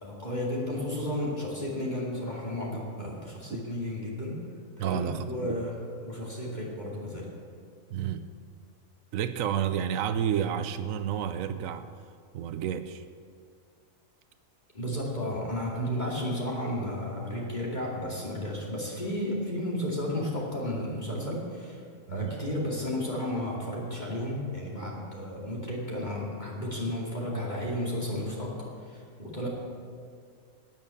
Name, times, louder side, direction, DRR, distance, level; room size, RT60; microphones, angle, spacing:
voice 1, 0.0-4.4 4.8-7.3 14.7-21.8 22.1-29.5, left 1 dB, 35° left, -3 dB, 2.5 m, -33 dB
voice 2, 4.8-5.6 7.9-8.3 9.1-11.9 12.3-13.0 22.1-22.4, right 9 dB, 85° right, 11 dB, 1.0 m, -30 dB
12.5 x 9.2 x 8.4 m, 2.2 s
omnidirectional pair, 1.4 m